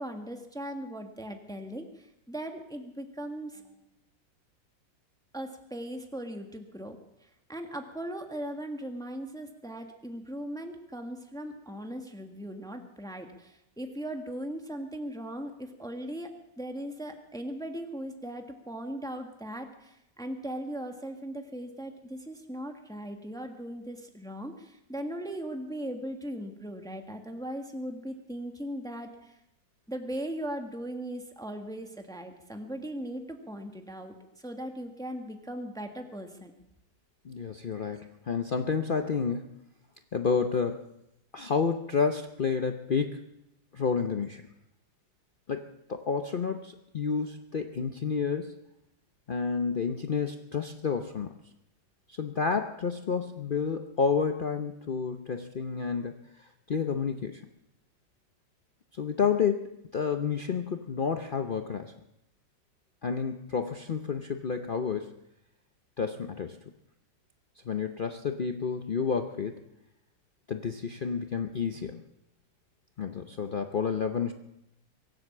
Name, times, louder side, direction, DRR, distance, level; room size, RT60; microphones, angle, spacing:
voice 1, 0.0-3.8 5.3-29.4 29.9-36.5, right 1 dB, ahead, 5 dB, 1.2 m, -39 dB
voice 2, 37.2-39.5 40.1-40.8 41.3-43.2 43.7-44.4 45.5-48.6 49.3-51.4 52.1-57.4 58.9-61.9 63.0-65.2 66.0-66.6 67.6-69.6 70.5-72.0 73.0-74.3, left 5 dB, 85° left, 6 dB, 0.4 m, -30 dB
23.0 x 8.0 x 7.3 m, 0.85 s
omnidirectional pair, 2.0 m